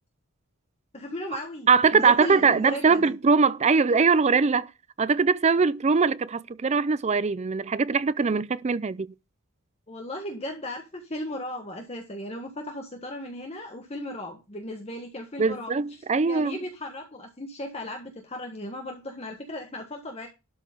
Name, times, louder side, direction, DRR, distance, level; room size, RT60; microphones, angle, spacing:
voice 1, 0.9-3.2 9.9-20.3, left 1 dB, 30° left, 1.5 m, -36 dB
voice 2, 1.7-4.7 5.0-9.1 15.4-16.6, right 5 dB, 30° right, 0.4 m, -22 dB
12.0 x 4.9 x 5.3 m
head